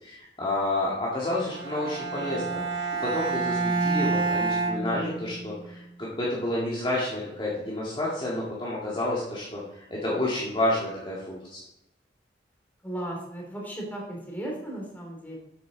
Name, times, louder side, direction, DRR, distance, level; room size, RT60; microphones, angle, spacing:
voice 1, 0.0-11.6, left 1 dB, 25° left, -6 dB, 2.0 m, -30 dB
Bowed string instrument, 1.5-5.6, right 3 dB, 80° right, 1.9 m, -28 dB
voice 2, 12.8-15.4, right 1 dB, 10° left, -3 dB, 2.9 m, -36 dB
10.5 x 8.4 x 3.9 m, 0.90 s
head